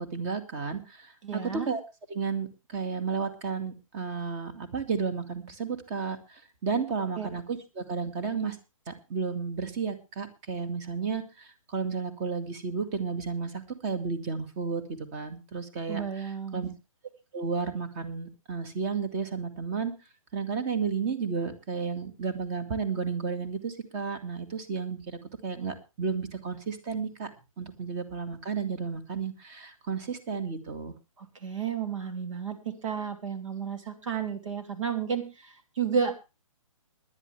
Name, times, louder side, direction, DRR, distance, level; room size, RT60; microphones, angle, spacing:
voice 1, 0.0-1.8 2.1-8.6 8.9-14.8 15.1-16.7 17.3-19.9 20.3-27.3 27.6-30.9, right 5 dB, 30° right, 9 dB, 2.2 m, -32 dB
voice 2, 1.2-1.7 7.2-7.3 15.9-16.6 31.2-36.2, right 7 dB, 65° right, 7 dB, 3.1 m, -32 dB
20.5 x 10.5 x 3.4 m, 0.28 s
hypercardioid pair, 140°, 18 cm